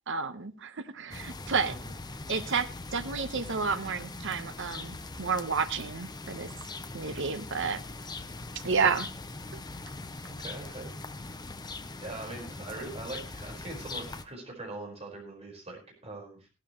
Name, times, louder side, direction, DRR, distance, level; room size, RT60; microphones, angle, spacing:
voice 1, 0.1-1.7 2.3-6.5 6.9-7.8 8.6-9.1 9.5-9.6, right 5 dB, 65° right, 10 dB, 1.1 m, -31 dB
sound 1, 1.1-14.3, left 3 dB, 20° left, 0.8 m, -41 dB
voice 2, 10.3-10.9 11.9-16.5, right 2 dB, 30° right, 1 dB, 4.7 m, -42 dB
15.5 x 12.5 x 3.1 m, 0.30 s
head